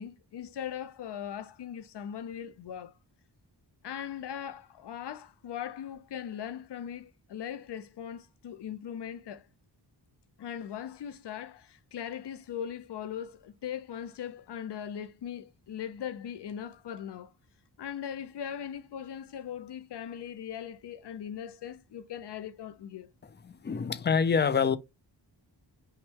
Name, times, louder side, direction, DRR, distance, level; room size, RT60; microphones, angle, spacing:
voice 1, 0.0-2.9 3.8-9.4 10.4-17.3 17.8-23.1, left 9 dB, 70° left, 0.6 m, -39 dB
voice 2, 23.2-24.8, left 6 dB, 25° left, 0.3 m, -27 dB
5.6 x 2.2 x 3.4 m
wide cardioid pair, 135°, 43 cm